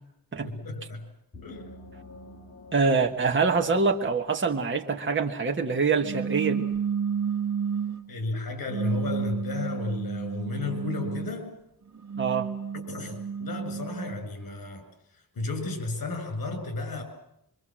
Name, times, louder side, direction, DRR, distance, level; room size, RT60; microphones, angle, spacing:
voice 1, 0.4-1.1 1.4-1.7 8.1-11.6 12.9-14.9 15.3-17.0, left 3 dB, 65° left, 7 dB, 7.2 m, -33 dB
sound 1, 1.3-4.9, left 1 dB, 35° left, 5.4 m, -49 dB
voice 2, 2.7-6.7 12.2-12.5, right 4 dB, 30° right, 3 dB, 1.5 m, -25 dB
sound 2, 6.0-8.1 8.7-11.4 11.9-14.2, right 7 dB, 50° right, 2.1 m, -31 dB
24.5 x 24.5 x 7.6 m, 0.78 s
wide cardioid pair, 125°, 36 cm